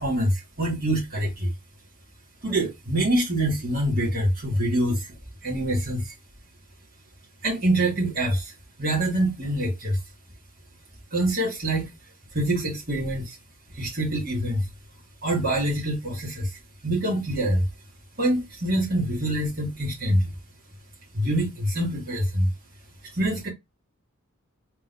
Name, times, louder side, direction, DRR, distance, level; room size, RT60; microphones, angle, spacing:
voice 1, 0.0-1.5 2.4-5.1 5.4-6.1 7.4-8.5 8.8-10.0 11.1-11.9 12.3-13.4 13.7-14.6 15.2-16.5 16.8-17.6 18.2-20.2 21.1-22.5 23.1-23.5, right 1 dB, 40° right, 2.2 m, -25 dB
4.1 x 3.8 x 2.6 m
head